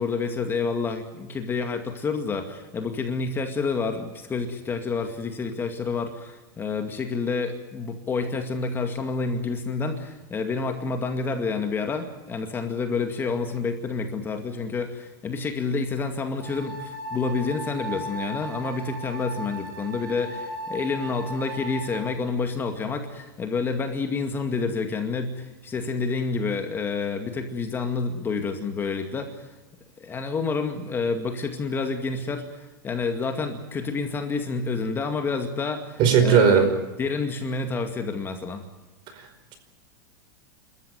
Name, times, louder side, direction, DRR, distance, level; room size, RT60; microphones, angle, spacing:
voice 1, 0.0-29.5 30.0-36.7 37.0-38.6, left 4 dB, 20° left, 6 dB, 2.2 m, -29 dB
sound 1, 16.4-22.0, right 1 dB, 80° right, 6.0 m, -37 dB
voice 2, 36.0-36.7 39.1-39.5, right 7 dB, 40° right, 8 dB, 5.0 m, -18 dB
27.5 x 14.0 x 9.3 m, 1.1 s
supercardioid pair, 140°, 11 cm